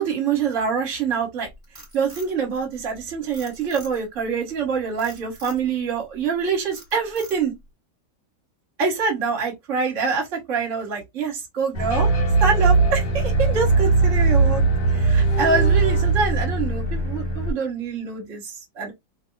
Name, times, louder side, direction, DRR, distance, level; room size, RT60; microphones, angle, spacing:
voice 1, 0.0-1.5 1.9-7.5 8.8-12.1 12.4-14.6 14.9-18.9, right 5 dB, 45° right, 1.5 m, -25 dB
Frog, 1.4-3.0 3.3-4.2 5.0-5.6 6.1-6.4 6.7-7.6, right 1 dB, 15° right, 1.8 m, -44 dB
sound 1, 11.7-17.5, right 3 dB, 70° left, 1.7 m, -20 dB
3.2 x 2.8 x 2.3 m
omnidirectional pair, 2.1 m